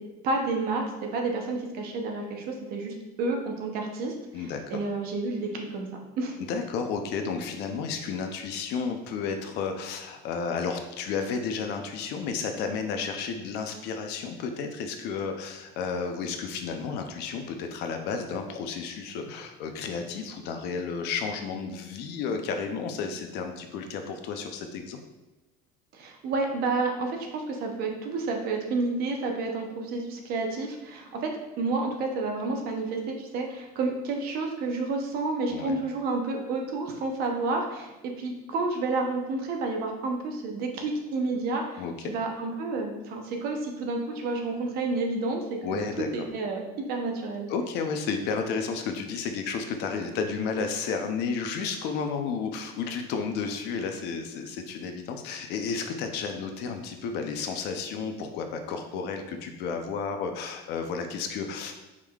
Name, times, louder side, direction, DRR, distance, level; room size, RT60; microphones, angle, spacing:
voice 1, 0.2-5.9 6.2-6.4 25.9-31.3 31.6-45.8 46.1-47.5, right 3 dB, 50° right, 2 dB, 0.7 m, -30 dB
voice 2, 4.3-4.8 6.4-25.0 35.5-35.8 41.8-42.1 45.6-46.3 47.5-61.7, left 5 dB, 60° left, 5 dB, 0.5 m, -32 dB
4.7 x 3.6 x 2.3 m, 1.1 s
cardioid pair, 165°, 20 cm